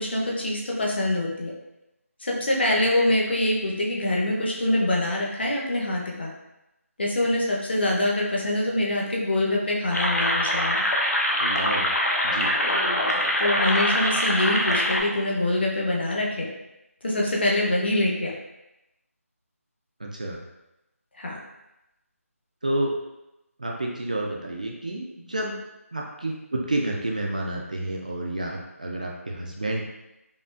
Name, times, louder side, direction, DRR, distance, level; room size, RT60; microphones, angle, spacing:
voice 1, 0.0-1.5 2.2-6.3 7.0-10.8 13.4-16.5 17.0-18.3 21.2-21.4, left 1 dB, 45° left, -2 dB, 0.7 m, -24 dB
sound 1, 9.9-15.0, left 1 dB, 85° left, 0.8 m, -24 dB
voice 2, 11.4-11.9 12.2-12.5 20.0-20.4 22.6-22.9 23.6-25.6 25.9-29.8, right 1 dB, 30° right, -1 dB, 0.3 m, -29 dB
5.0 x 2.3 x 2.4 m, 0.93 s
figure-of-eight pair, 175°, 8 cm